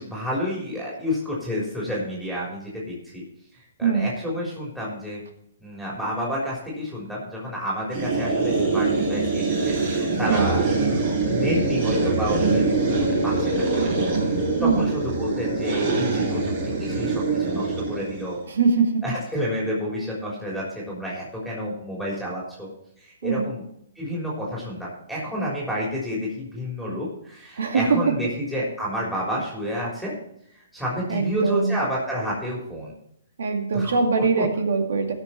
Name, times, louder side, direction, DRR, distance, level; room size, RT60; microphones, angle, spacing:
voice 1, 0.0-3.2 3.5-5.2 5.6-13.9 14.6-16.5 16.8-18.4 19.0-22.7 23.0-23.6 24.0-30.1 30.7-32.9 33.7-34.4, equal, 5° right, -6 dB, 3.6 m, -30 dB
sound 1, 7.9-18.4, right 3 dB, 45° right, 5.3 m, -24 dB
voice 2, 18.5-19.0 23.2-23.5 27.6-28.0 31.1-31.8 33.4-35.1, right 4 dB, 75° right, 5 dB, 2.2 m, -22 dB
16.0 x 6.4 x 4.5 m, 0.73 s
hypercardioid pair, 145°, 0 cm